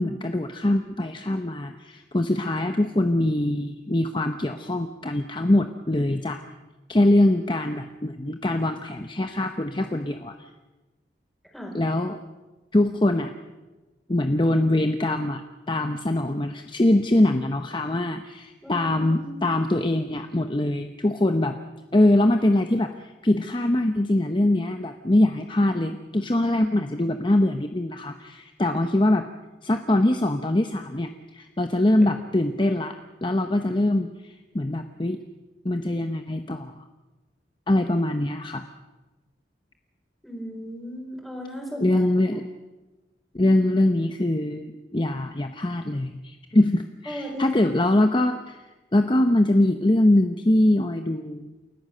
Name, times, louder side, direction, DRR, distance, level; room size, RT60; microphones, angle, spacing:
voice 1, 0.0-6.4 6.9-10.3 11.7-12.2 12.7-13.3 14.1-21.6 21.9-29.2 29.6-35.2 35.6-36.7 37.7-38.6 41.8-42.4 43.3-48.6 48.9-51.5, left 1 dB, 25° left, 7 dB, 0.8 m, -23 dB
voice 2, 18.6-19.3 32.0-32.1 40.2-42.1 47.1-47.8, equal, ahead, 0 dB, 4.6 m, -36 dB
29.0 x 14.5 x 6.7 m, 1.2 s
head